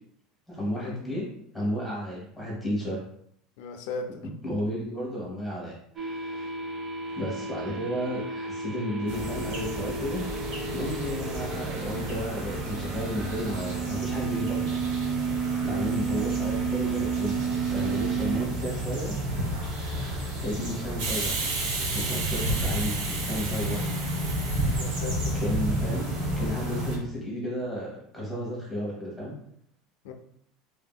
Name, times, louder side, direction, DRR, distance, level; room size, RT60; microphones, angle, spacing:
voice 1, 0.5-1.3 1.5-3.0 4.2-6.5 7.1-10.4 10.7-15.3 15.6-17.4 17.7-19.2 19.8-21.4 21.9-23.8 25.3-29.3, equal, ahead, -5 dB, 1.2 m, -33 dB
voice 2, 3.6-4.1 15.7-16.1 24.6-25.3 30.0-30.1, left 4 dB, 75° left, 4 dB, 0.4 m, -37 dB
sound 1, 6.0-18.5, right 6 dB, 25° right, 0.5 m, -32 dB
sound 2, 9.1-27.0, equal, 65° right, 1.0 m, -32 dB
Hiss, 21.0-26.4, right 3 dB, 80° right, 0.7 m, -34 dB
3.1 x 2.7 x 2.3 m, 0.69 s
supercardioid pair, 145°, 0 cm